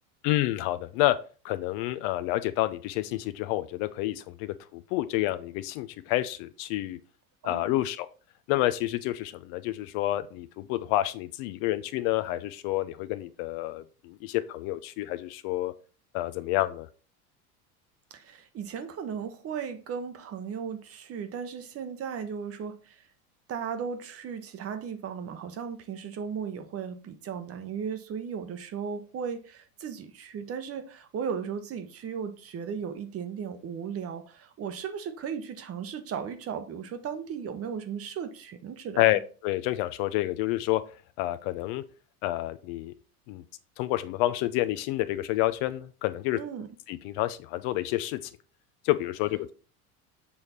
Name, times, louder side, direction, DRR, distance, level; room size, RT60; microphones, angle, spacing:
voice 1, 0.2-1.2 1.4-7.0 7.4-8.1 8.5-15.7 16.1-16.9 39.0-40.8 41.2-41.8 42.2-42.9 43.3-43.4 43.8-46.4 46.9-48.3 48.8-49.5, left 16 dB, 50° left, 0.5 m, -29 dB
voice 2, 7.4-7.8 18.1-23.0 23.5-39.1 46.3-46.7, right 7 dB, 30° right, 0.8 m, -36 dB
7.0 x 3.3 x 4.1 m
hypercardioid pair, 90°, 46 cm